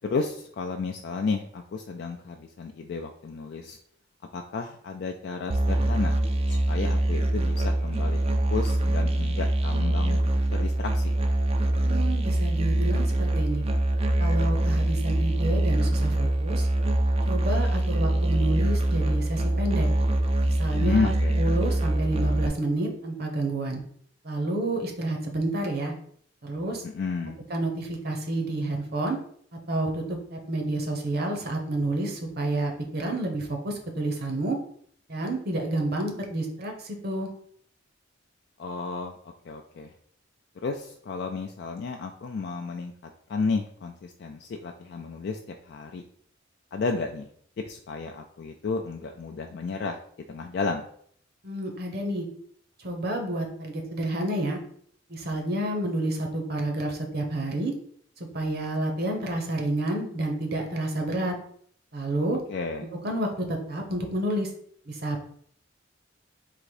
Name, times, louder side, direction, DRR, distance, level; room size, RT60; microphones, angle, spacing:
voice 1, 0.0-3.8 4.3-6.1 6.5-10.2 10.6-11.1 20.8-21.4 26.8-27.4 38.6-39.2 39.4-39.9 40.6-45.4 45.7-46.0 46.7-47.3 47.7-50.0 50.3-50.9 62.5-62.8, left 4 dB, 55° left, 3 dB, 0.3 m, -32 dB
Musical instrument, 5.5-22.5, right 1 dB, 30° right, 0.4 m, -24 dB
voice 2, 11.8-13.6 14.2-16.7 17.3-19.9 20.4-23.8 24.2-25.9 26.4-26.8 27.5-29.2 29.7-34.6 35.1-37.3 51.4-52.3 52.8-54.6 55.1-57.7 58.3-61.3 61.9-62.4 63.0-64.5 64.9-65.2, right 1 dB, 50° right, 3 dB, 0.9 m, -29 dB
3.8 x 2.6 x 4.7 m, 0.62 s
head